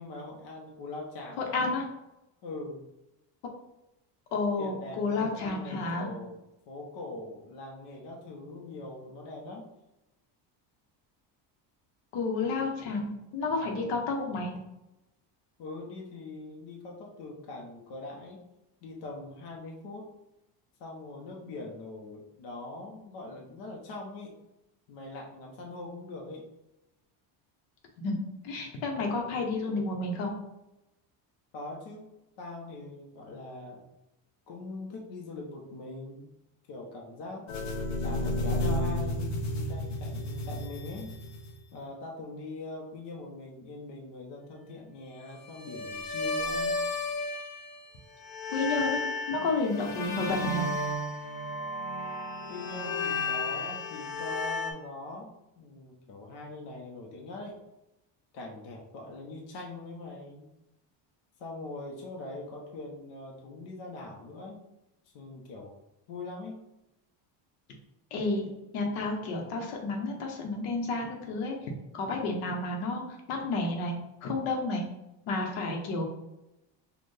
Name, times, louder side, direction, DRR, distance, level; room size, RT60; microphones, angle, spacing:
voice 1, 0.0-1.6 2.4-2.8 4.6-6.4 6.7-9.7 15.6-18.4 18.8-20.1 20.8-24.3 24.9-26.5 31.5-32.1 32.4-33.8 34.5-36.4 36.7-41.1 41.7-46.8 52.5-57.6 58.3-60.5 61.4-64.6 65.1-65.7 66.1-66.6, left 2 dB, 60° left, 0 dB, 0.9 m, -42 dB
voice 2, 1.4-1.8 4.3-6.1 12.1-14.5 28.0-28.2 28.4-30.3 48.5-49.0 49.3-50.7 68.1-68.5 68.7-73.0 73.3-73.9 74.2-74.8 75.3-76.0, left 3 dB, 80° left, 1 dB, 1.0 m, -31 dB
sound 1, 37.5-41.7 45.5-47.9 48.2-54.7, left 2 dB, 35° left, 0.6 m, -33 dB
4.3 x 2.5 x 3.3 m, 0.92 s
cardioid pair, 140°, 49 cm